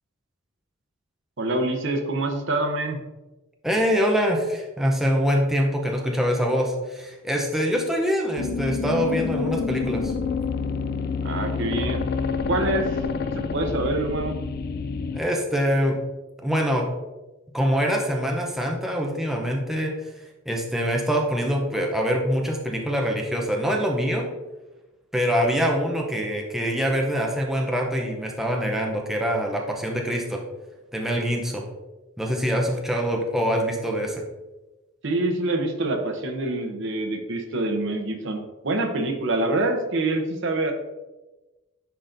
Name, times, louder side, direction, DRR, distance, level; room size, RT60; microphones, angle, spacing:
voice 1, 1.4-3.0 11.2-12.1 12.5-13.0 13.4-14.4 35.0-40.7, right 2 dB, 60° right, 4 dB, 0.8 m, -26 dB
voice 2, 3.6-10.1 15.1-16.0 16.4-16.9 17.5-19.9 20.5-24.3 25.1-30.4 30.9-31.7 32.2-34.2, equal, ahead, 0 dB, 0.6 m, -24 dB
sound 1, 8.4-15.2, left 5 dB, 50° left, 0.3 m, -28 dB
10.5 x 3.8 x 2.6 m, 1.1 s
head